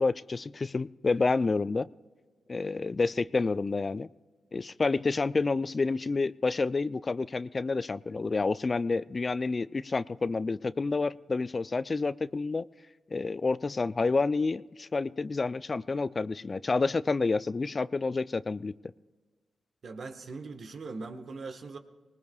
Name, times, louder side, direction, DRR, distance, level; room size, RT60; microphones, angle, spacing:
voice 1, 0.0-1.9 2.5-4.1 4.5-12.7 13.1-18.7, left 3 dB, 40° left, 17 dB, 0.3 m, -29 dB
voice 2, 19.8-21.8, right 4 dB, 60° right, 7 dB, 1.3 m, -40 dB
19.5 x 19.5 x 2.3 m, 1.3 s
supercardioid pair, 50°, 0 cm